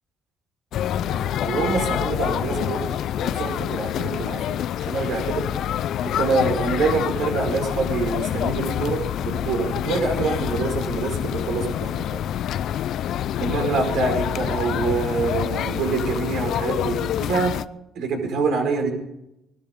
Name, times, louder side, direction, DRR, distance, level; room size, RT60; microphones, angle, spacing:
sound 1, 0.7-17.7, left 10 dB, 70° left, 0.6 m, -27 dB
voice 1, 1.0-2.9 3.2-5.5 6.2-12.2 13.4-17.5 17.9-18.9, right 4 dB, 75° right, 3 dB, 5.1 m, -25 dB
20.5 x 13.0 x 5.2 m, 0.84 s
supercardioid pair, 80°, 0 cm